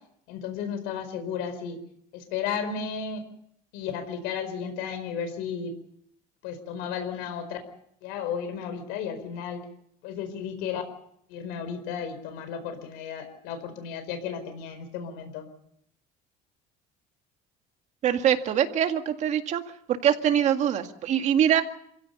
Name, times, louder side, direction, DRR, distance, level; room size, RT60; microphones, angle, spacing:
voice 1, 0.3-1.8 2.1-3.2 3.7-5.7 6.4-7.6 8.0-9.6 10.0-10.8 11.3-15.5, left 7 dB, 90° left, 8 dB, 4.6 m, -33 dB
voice 2, 18.0-19.6 20.0-21.6, right 9 dB, 45° right, 7 dB, 2.0 m, -23 dB
28.0 x 16.5 x 6.7 m, 0.71 s
cardioid pair, 150°, 17 cm